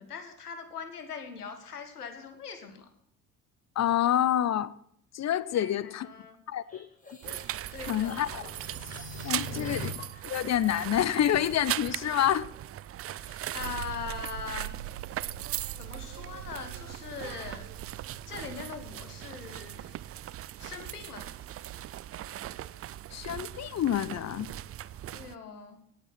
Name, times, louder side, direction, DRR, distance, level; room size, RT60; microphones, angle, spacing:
voice 1, 0.0-2.9 5.5-6.4 7.7-8.4 9.5-9.9 13.1-14.7 15.8-17.7 18.3-19.9 20.6-21.3 25.1-25.8, left 6 dB, 85° left, 1.9 m, -41 dB
voice 2, 3.8-4.7 5.1-6.1 6.5-6.9 7.9-8.4 9.2-10.0 10.2-12.5 23.1-24.5, left 11 dB, 35° left, 0.8 m, -27 dB
sound 1, 6.7-10.2, equal, 15° left, 5.1 m, -42 dB
sound 2, 7.2-25.3, right 12 dB, 30° right, 0.5 m, -39 dB
sound 3, 13.6-22.0, right 12 dB, 80° right, 0.8 m, -45 dB
18.0 x 7.5 x 6.0 m
figure-of-eight pair, 60°, 45 cm